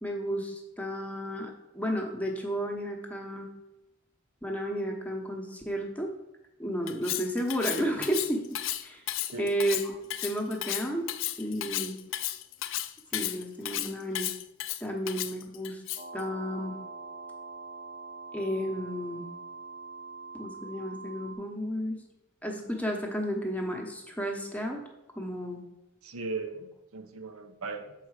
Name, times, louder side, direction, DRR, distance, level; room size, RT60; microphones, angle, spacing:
voice 1, 0.0-3.5 4.4-6.1 6.6-8.4 8.8-9.0 9.4-11.0 11.4-12.0 13.1-14.3 14.8-15.8 16.1-16.7 18.3-19.3 20.3-22.0 22.4-24.8 25.2-25.6, equal, 5° left, 1 dB, 0.9 m, -32 dB
Cutlery silverware, 6.9-16.2, left 13 dB, 65° left, 0.4 m, -34 dB
sound 1, 15.9-21.3, right 4 dB, 45° right, 0.8 m, -43 dB
voice 2, 26.0-27.9, right 3 dB, 90° right, 7 dB, 0.8 m, -38 dB
6.8 x 4.7 x 4.8 m, 0.94 s
head